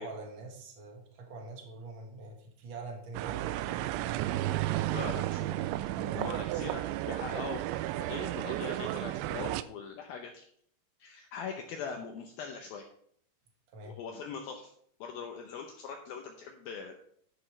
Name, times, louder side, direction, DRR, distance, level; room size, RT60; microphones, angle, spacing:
voice 1, 0.0-4.4 5.9-6.2 13.7-13.9, right 3 dB, 50° right, 1 dB, 1.4 m, -45 dB
sound 1, 3.1-9.6, right 15 dB, 85° right, 2.8 m, -33 dB
voice 2, 4.8-10.5 11.0-12.9 13.8-14.7 15.0-17.0, left 6 dB, 80° left, 3 dB, 2.1 m, -42 dB
11.0 x 9.9 x 3.3 m, 0.64 s
omnidirectional pair, 5.3 m